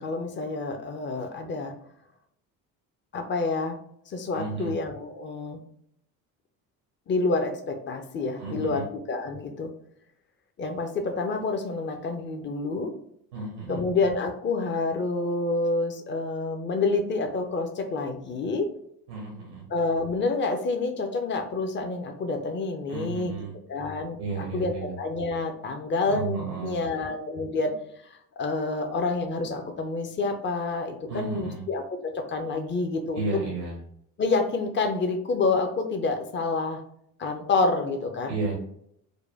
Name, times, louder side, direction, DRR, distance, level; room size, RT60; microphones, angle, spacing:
voice 1, 0.0-1.7 3.1-3.7 4.1-5.6 7.1-9.7 10.6-12.9 13.7-18.7 19.7-23.3 23.7-27.7 28.1-33.2 34.2-36.8 37.2-38.4, left 3 dB, 25° left, 5 dB, 0.7 m, -28 dB
voice 2, 4.3-4.7 8.4-8.9 13.3-13.9 19.1-19.7 22.9-23.6 24.2-24.9 26.0-26.8 31.1-31.6 33.1-33.8 38.3-38.6, right 4 dB, 75° right, -3 dB, 1.1 m, -33 dB
4.8 x 2.2 x 3.4 m, 0.72 s
figure-of-eight pair, 55°, 48 cm